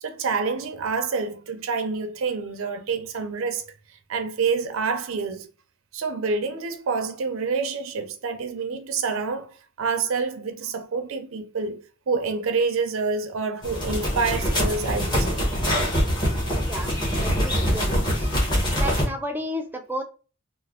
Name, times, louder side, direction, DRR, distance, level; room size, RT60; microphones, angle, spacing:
voice 1, 0.0-3.7 4.1-5.5 5.9-15.4 15.9-16.0, right 4 dB, 65° right, 0.5 m, -27 dB
sound 1, 13.6-19.1, equal, 20° left, 0.9 m, -24 dB
voice 2, 17.2-18.3 18.7-20.0, equal, 10° right, 0.4 m, -32 dB
3.2 x 2.0 x 3.5 m
head